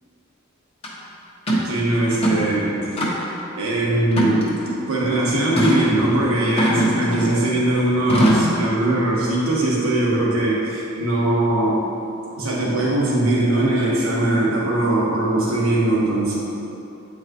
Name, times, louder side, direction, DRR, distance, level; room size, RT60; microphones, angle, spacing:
sound 1, 0.8-0.9 1.5-1.7 2.1-2.5 3.0-3.4 4.1-4.8 5.6-5.8 6.6-7.4 8.1-8.6, equal, 30° left, 1.0 m, -21 dB
voice 1, 1.5-2.9 3.6-11.8 12.3-16.4, right 1 dB, 85° right, -5 dB, 1.4 m, -20 dB
8.5 x 4.7 x 3.0 m, 2.8 s
head